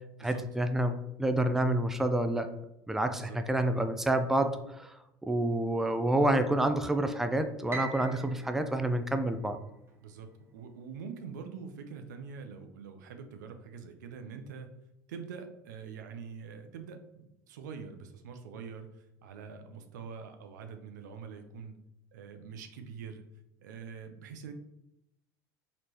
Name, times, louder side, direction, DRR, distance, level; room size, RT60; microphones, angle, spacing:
voice 1, 0.2-2.5 2.9-4.9 5.2-9.6, right 1 dB, 5° right, 8 dB, 0.4 m, -28 dB
Piano, 7.7-10.0, right 3 dB, 25° right, 0.9 m, -43 dB
voice 2, 10.0-14.7 15.1-21.8 22.1-23.2 23.6-24.5, right 6 dB, 85° right, 7 dB, 0.5 m, -45 dB
4.1 x 3.1 x 2.8 m, 0.86 s
hypercardioid pair, 90°, 10 cm